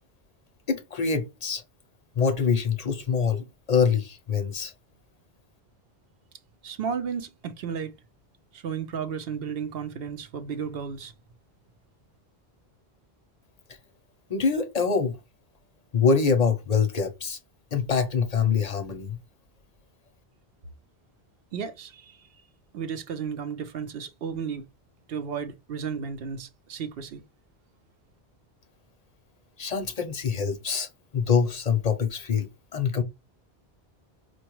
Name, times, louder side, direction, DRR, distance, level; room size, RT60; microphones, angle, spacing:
voice 1, 0.7-1.6 2.2-4.7 14.3-15.2 15.9-17.4 17.7-19.2 29.6-33.0, left 6 dB, 50° left, 0.6 m, -25 dB
voice 2, 6.6-7.9 8.5-11.1 21.5-22.3 22.7-24.7 25.1-27.2, right 6 dB, 70° right, 0.8 m, -33 dB
4.3 x 2.3 x 2.9 m
omnidirectional pair, 1.1 m